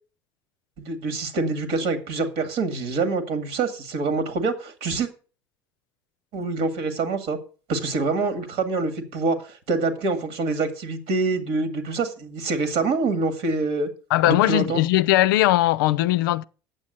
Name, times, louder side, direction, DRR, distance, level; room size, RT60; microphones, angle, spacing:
voice 1, 0.8-5.1 6.3-7.4 7.7-13.9 14.3-14.8, right 3 dB, 65° right, 2.0 m, -25 dB
voice 2, 14.1-16.4, left 15 dB, 80° left, 0.4 m, -19 dB
8.9 x 7.4 x 6.5 m
hypercardioid pair, 70°, 11 cm